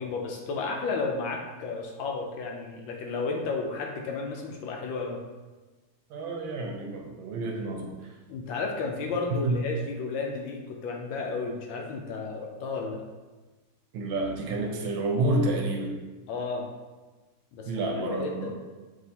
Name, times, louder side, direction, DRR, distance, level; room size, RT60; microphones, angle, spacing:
voice 1, 0.0-5.2 8.3-13.0 16.3-16.7 17.5-17.7 18.0-18.5, left 4 dB, 75° left, 1 dB, 1.3 m, -32 dB
voice 2, 6.1-7.9 9.4-9.6 13.9-15.9 17.7-18.5, right 2 dB, 75° right, 2 dB, 1.3 m, -29 dB
6.1 x 2.7 x 2.8 m, 1.3 s
omnidirectional pair, 2.3 m